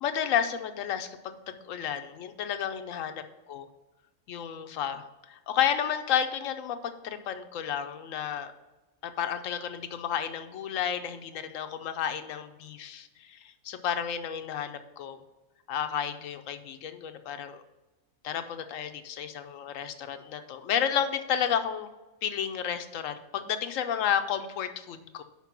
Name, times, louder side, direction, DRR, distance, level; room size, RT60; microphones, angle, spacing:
voice 1, 0.0-3.2 3.5-3.7 4.3-8.5 9.0-15.2 15.7-17.6 18.2-21.9 22.2-25.2, left 8 dB, 70° left, 9 dB, 1.0 m, -31 dB
5.9 x 5.3 x 5.8 m, 1.1 s
omnidirectional pair, 1.5 m